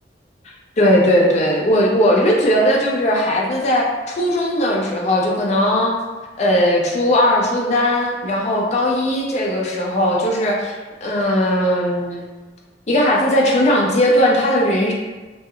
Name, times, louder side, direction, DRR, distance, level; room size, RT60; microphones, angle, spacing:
voice 1, 0.8-6.0 6.4-10.7 11.0-12.2 12.9-14.9, equal, 40° left, -2 dB, 0.5 m, -18 dB
2.1 x 2.1 x 3.6 m, 1.3 s
head